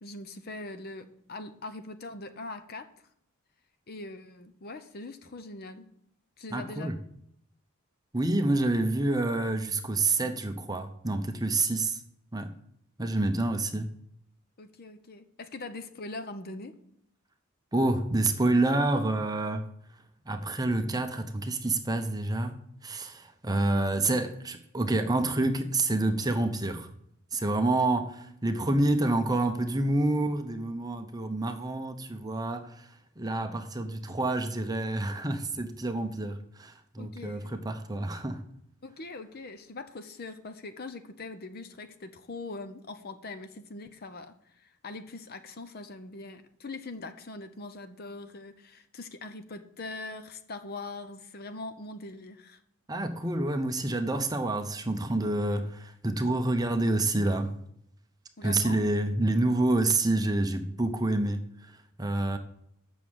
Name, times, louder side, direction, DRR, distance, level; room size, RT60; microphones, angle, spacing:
voice 1, 0.0-2.9 3.9-5.8 6.4-6.9 14.6-16.8 37.0-37.6 38.8-52.6 58.4-58.8, left 2 dB, 45° left, 0.8 m, -42 dB
voice 2, 6.5-7.0 8.1-12.0 12.3-12.5 13.0-13.9 17.7-19.7 20.3-22.6 22.8-26.9 27.3-38.4 52.9-57.5 58.4-62.4, right 2 dB, 20° right, 0.7 m, -28 dB
8.1 x 6.2 x 7.1 m
head